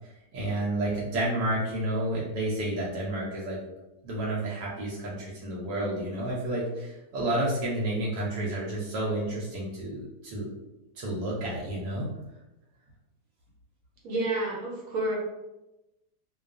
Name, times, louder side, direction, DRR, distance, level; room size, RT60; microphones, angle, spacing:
voice 1, 0.3-3.6 4.0-10.5 11.0-12.1, right 1 dB, 85° right, -4 dB, 1.2 m, -30 dB
voice 2, 14.0-15.2, right 2 dB, 65° right, -2 dB, 1.0 m, -29 dB
2.5 x 2.3 x 2.3 m, 0.99 s
omnidirectional pair, 1.7 m